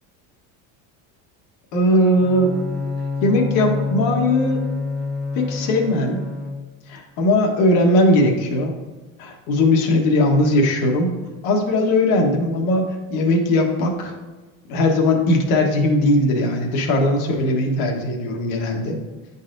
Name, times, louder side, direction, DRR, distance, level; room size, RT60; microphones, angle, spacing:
voice 1, 1.7-2.6 3.2-4.6 5.3-6.3 6.9-8.7 9.2-11.2 11.4-14.1 14.7-19.0, left 1 dB, 75° left, 2 dB, 1.3 m, -19 dB
Bowed string instrument, 2.1-7.0, left 3 dB, ahead, 0.4 m, -27 dB
10.0 x 4.1 x 2.6 m, 1.2 s
cardioid pair, 135°, 38 cm